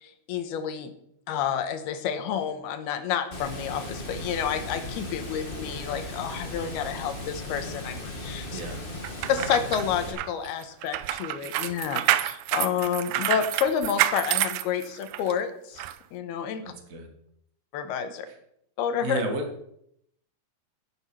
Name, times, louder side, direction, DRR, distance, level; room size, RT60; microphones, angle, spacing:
voice 1, 0.0-0.9 1.3-8.6 9.3-15.8 16.1-16.6 17.7-18.3 18.8-19.2, left 8 dB, 80° left, 8 dB, 3.0 m, -29 dB
Water, 3.3-10.1, left 1 dB, 40° left, 0.7 m, -37 dB
voice 2, 8.5-8.8 16.6-17.1 19.0-19.5, right 2 dB, 40° right, 4 dB, 1.2 m, -32 dB
sound 1, 9.0-15.3 15.8-15.9, right 14 dB, 85° right, 2.1 m, -28 dB
11.5 x 8.8 x 6.2 m, 0.73 s
omnidirectional pair, 4.5 m